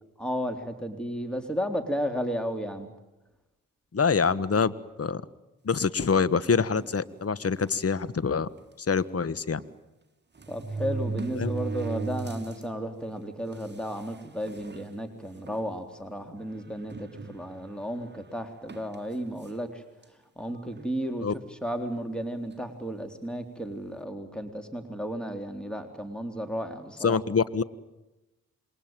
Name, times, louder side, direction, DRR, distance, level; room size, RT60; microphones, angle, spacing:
voice 1, 0.2-2.9 10.5-19.8 20.4-27.2, equal, ahead, 6 dB, 3.8 m, -33 dB
voice 2, 3.9-4.7 5.0-5.2 5.6-8.5 8.8-9.6 11.4-11.5 21.2-21.3 27.0-27.6, left 5 dB, 40° left, 17 dB, 1.5 m, -25 dB
sound 1, 6.8-7.0 7.8-7.9 8.2-8.3 9.6-9.7 10.4-12.6 13.1-13.2 14.0-14.1 14.5-14.8 15.5-15.6 16.9-17.7 18.7-18.9, right 4 dB, 30° right, 1.6 m, -35 dB
28.0 x 22.5 x 9.1 m, 1.0 s
supercardioid pair, 40°, 36 cm